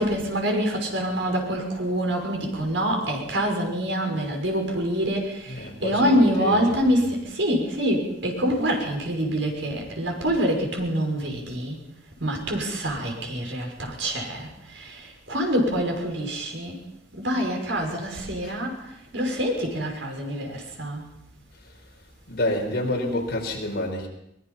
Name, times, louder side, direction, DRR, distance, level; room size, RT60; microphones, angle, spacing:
voice 1, 0.0-11.8 12.2-16.8 17.1-18.8 19.1-21.1, equal, 80° right, 2 dB, 6.0 m, -26 dB
voice 2, 5.5-6.6 18.4-18.5 22.3-24.1, left 1 dB, 55° left, 1 dB, 5.0 m, -28 dB
23.0 x 21.5 x 5.6 m, 0.80 s
head